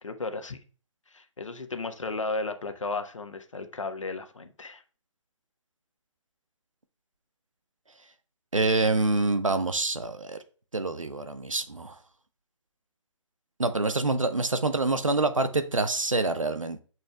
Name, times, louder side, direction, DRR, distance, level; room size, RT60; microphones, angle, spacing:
voice 1, 0.0-0.6 1.1-4.8, left 3 dB, 75° left, 1.1 m, -34 dB
voice 2, 8.5-10.4 10.7-11.9 13.6-16.8, right 2 dB, 85° right, 1.0 m, -26 dB
8.8 x 6.3 x 2.3 m
figure-of-eight pair, 130°, 16 cm